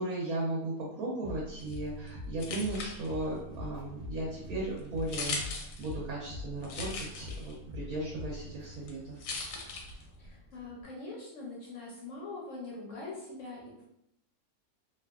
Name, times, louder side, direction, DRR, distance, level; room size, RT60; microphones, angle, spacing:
voice 1, 0.0-9.2, right 2 dB, 70° right, -3 dB, 1.1 m, -36 dB
sound 1, 1.2-10.8, left 3 dB, 30° right, 1.0 m, -45 dB
sound 2, 1.6-10.4, left 3 dB, 90° left, 1.2 m, -42 dB
voice 2, 10.2-13.8, left 3 dB, 70° left, -3 dB, 0.8 m, -43 dB
2.8 x 2.3 x 2.3 m, 0.80 s
omnidirectional pair, 1.7 m